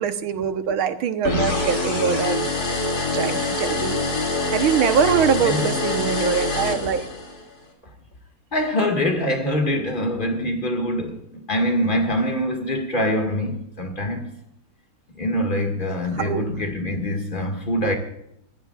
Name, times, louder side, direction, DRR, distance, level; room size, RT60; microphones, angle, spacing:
voice 1, 0.0-2.5 3.1-4.0 4.5-7.1 16.2-16.5, right 7 dB, 90° right, 1.9 m, -23 dB
sound 1, 1.2-7.4, left 3 dB, 50° left, 3.1 m, -25 dB
voice 2, 8.5-11.2 11.5-14.3 15.2-18.0, left 1 dB, 25° left, 2.0 m, -24 dB
22.5 x 16.0 x 2.4 m
omnidirectional pair, 2.2 m